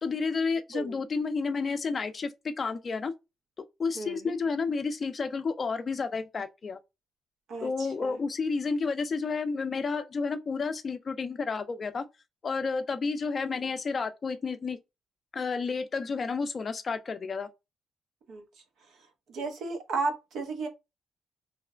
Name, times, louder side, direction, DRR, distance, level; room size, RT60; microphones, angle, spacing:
voice 1, 0.0-3.1 3.8-6.8 7.6-12.0 12.4-14.8 15.3-17.5, left 4 dB, 40° left, 0.4 m, -31 dB
voice 2, 4.0-4.4 7.5-8.2 18.3-18.4 19.3-20.7, right 3 dB, 75° right, 0.7 m, -34 dB
3.1 x 2.0 x 2.3 m
cardioid pair, 90°, 0 cm